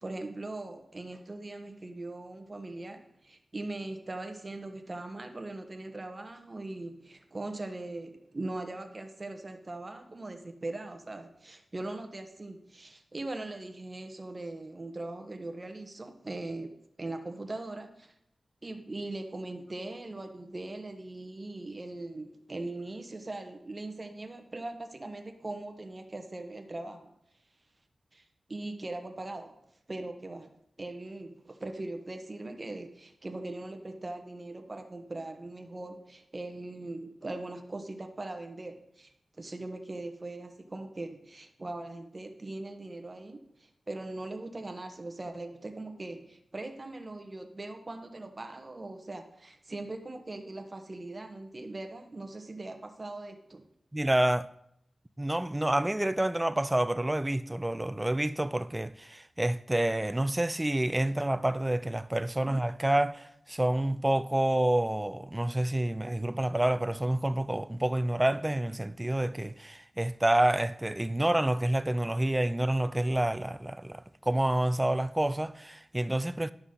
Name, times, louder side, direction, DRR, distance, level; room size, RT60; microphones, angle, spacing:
voice 1, 0.0-18.1 18.6-27.1 28.1-28.2 28.5-29.6 29.9-30.5 30.8-53.7, right 2 dB, 35° right, 1.1 m, -40 dB
voice 2, 53.9-54.5 55.2-76.5, right 1 dB, 15° right, 0.4 m, -28 dB
11.0 x 6.0 x 3.9 m
cardioid pair, 65°, 0 cm